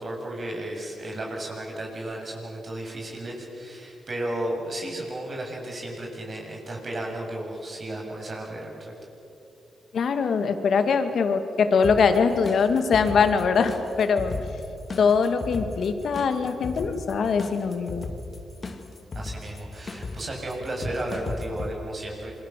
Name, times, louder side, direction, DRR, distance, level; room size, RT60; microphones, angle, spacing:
voice 1, 0.0-8.9 19.1-22.3, right 1 dB, 40° right, 0 dB, 7.7 m, -34 dB
voice 2, 9.9-14.3 15.0-18.0, left 5 dB, 65° left, 8 dB, 2.3 m, -22 dB
sound 1, 11.8-21.7, left 3 dB, 45° left, 2.3 m, -37 dB
27.5 x 23.5 x 7.7 m, 2.8 s
cardioid pair, 85°, 0 cm